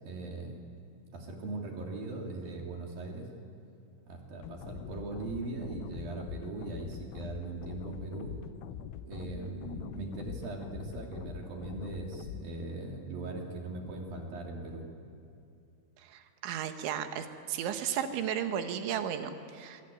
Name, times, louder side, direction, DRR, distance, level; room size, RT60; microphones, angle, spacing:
voice 1, 0.0-0.5 1.1-3.3 4.1-8.4 9.1-14.9, right 2 dB, 50° right, 1 dB, 4.3 m, -39 dB
sound 1, 4.4-12.4, left 9 dB, 85° left, 3.5 m, -44 dB
voice 2, 16.0-19.8, right 9 dB, 70° right, 8 dB, 3.6 m, -34 dB
25.0 x 24.5 x 9.2 m, 2.6 s
omnidirectional pair, 5.9 m